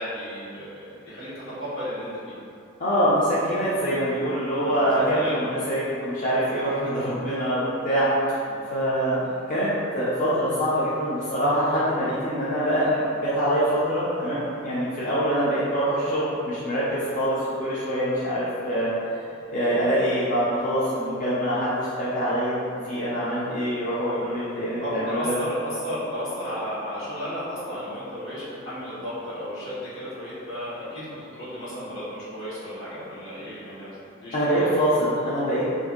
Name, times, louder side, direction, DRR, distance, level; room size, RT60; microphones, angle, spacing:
voice 1, 0.0-2.4 4.6-5.5 8.4-8.6 24.8-33.9 34.2-34.7, equal, 75° left, -11 dB, 1.4 m, -34 dB
voice 2, 2.8-8.1 8.7-9.2 9.5-18.9 19.5-22.6 22.8-25.3 34.3-35.6, equal, 40° left, -10 dB, 0.5 m, -24 dB
2.6 x 2.5 x 3.7 m, 2.6 s
head